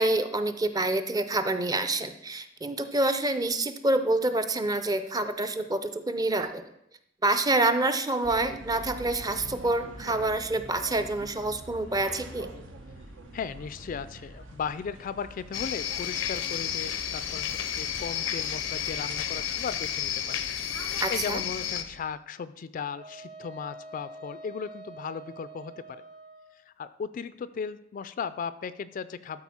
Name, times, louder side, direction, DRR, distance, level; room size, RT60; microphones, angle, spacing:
voice 1, 0.0-6.6 7.2-12.5 21.0-21.4, right 2 dB, 20° right, 9 dB, 0.5 m, -27 dB
sound 1, 8.2-22.0, right 1 dB, 90° right, 1.1 m, -45 dB
voice 2, 13.3-20.5 20.8-26.0 26.7-29.4, left 6 dB, 45° left, 14 dB, 0.3 m, -36 dB
sound 2, 15.5-21.8, left 9 dB, 90° left, 0.6 m, -32 dB
Wind instrument woodwind instrument, 23.0-26.5, right 2 dB, 50° right, 3.3 m, -46 dB
12.5 x 4.2 x 4.3 m, 0.79 s
head